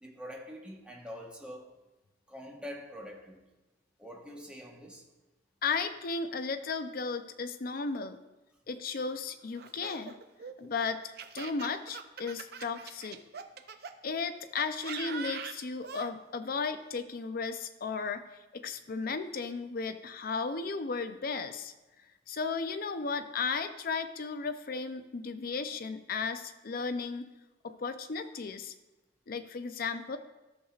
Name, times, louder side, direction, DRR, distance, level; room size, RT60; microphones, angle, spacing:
voice 1, 0.0-1.7 2.3-3.4 4.0-5.0, equal, 5° right, -1 dB, 1.1 m, -45 dB
voice 2, 5.6-8.2 8.7-10.2 10.6-13.2 14.0-18.3 18.5-21.7 22.3-27.3 27.6-28.7 29.3-30.2, left 4 dB, 55° left, 9 dB, 0.5 m, -35 dB
Laughter, 9.6-13.9 14.6-16.1, right 6 dB, 60° right, 0.5 m, -42 dB
13.5 x 6.4 x 2.4 m, 1.1 s
head